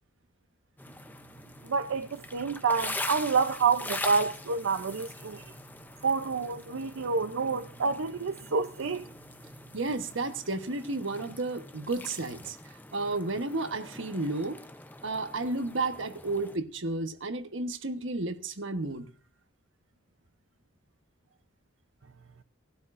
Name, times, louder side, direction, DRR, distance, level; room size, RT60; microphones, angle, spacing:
sound 1, 0.8-16.6, left 2 dB, 10° left, 0.6 m, -43 dB
voice 1, 1.7-5.4 6.0-9.0, right 5 dB, 85° right, 0.6 m, -28 dB
voice 2, 9.7-14.6 15.0-19.1, right 2 dB, 65° right, 1.2 m, -32 dB
19.0 x 12.5 x 2.6 m
head